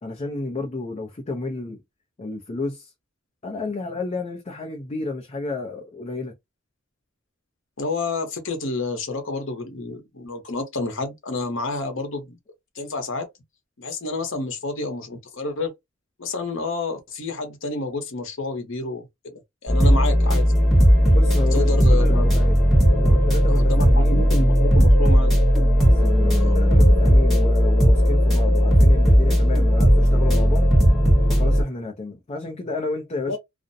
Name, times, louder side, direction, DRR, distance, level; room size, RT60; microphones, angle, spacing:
voice 1, 0.0-1.8 2.2-2.9 3.4-6.3 19.8-20.1 21.1-22.6 22.9-24.3 25.9-30.7 31.3-33.4, left 3 dB, 30° left, 0.5 m, -31 dB
voice 2, 7.8-12.4 12.7-13.3 13.8-15.7 16.2-20.5 21.5-22.4 23.5-25.4 26.4-26.6 33.3-33.4, left 3 dB, 70° left, 0.9 m, -29 dB
sound 1, 19.7-31.6, equal, ahead, 1.0 m, -16 dB
2.5 x 2.1 x 2.6 m
head